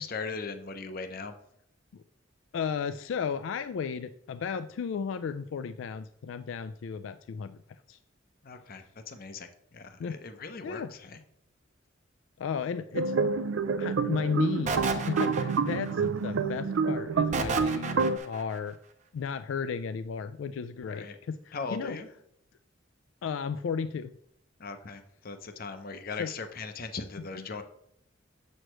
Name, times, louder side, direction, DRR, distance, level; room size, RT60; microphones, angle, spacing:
voice 1, 0.0-1.3 8.4-11.2 16.3-16.6 20.9-21.2 21.5-22.1 24.6-27.6, left 4 dB, 50° left, 8 dB, 0.7 m, -39 dB
voice 2, 2.5-7.6 7.9-8.0 10.0-10.2 10.6-10.9 12.4-13.1 13.8-18.8 19.1-22.0 23.2-24.1 26.2-26.3, left 6 dB, 80° left, 11 dB, 0.3 m, -34 dB
sound 1, 12.9-18.2, right 5 dB, 85° right, 0.4 m, -28 dB
sound 2, 14.7-15.9 17.3-18.4, right 4 dB, 40° right, 0.7 m, -31 dB
7.6 x 6.4 x 3.1 m, 0.74 s
head